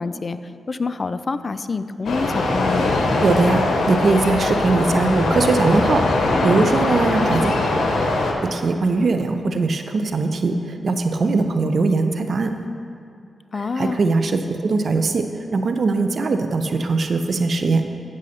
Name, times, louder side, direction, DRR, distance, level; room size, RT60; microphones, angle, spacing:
voice 1, 0.0-2.9 13.5-14.0, left 4 dB, 50° left, 12 dB, 0.3 m, -27 dB
sound 1, 2.0-8.3, left 2 dB, 80° left, 0.8 m, -21 dB
voice 2, 3.2-7.7 8.4-12.6 13.5-17.8, right 3 dB, 65° right, 7 dB, 0.5 m, -21 dB
14.0 x 6.3 x 2.8 m, 2.4 s
supercardioid pair, 45°, 0 cm